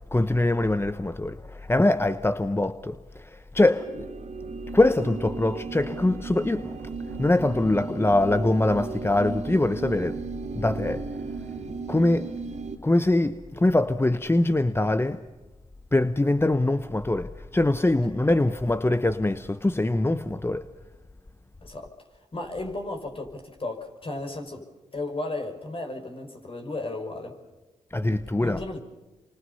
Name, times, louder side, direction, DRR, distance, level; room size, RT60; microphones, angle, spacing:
voice 1, 0.1-4.1 4.7-6.7 7.2-10.2 10.6-11.0 11.9-12.3 12.8-15.2 15.9-20.7 27.9-28.6, left 2 dB, 20° left, 1.0 m, -23 dB
sound 1, 3.7-12.8, right 4 dB, 55° right, 2.9 m, -35 dB
voice 2, 21.6-21.9 22.3-24.6 24.9-27.4 28.4-28.8, left 2 dB, 40° left, 5.8 m, -34 dB
28.0 x 25.0 x 5.6 m
supercardioid pair, 45°, 14 cm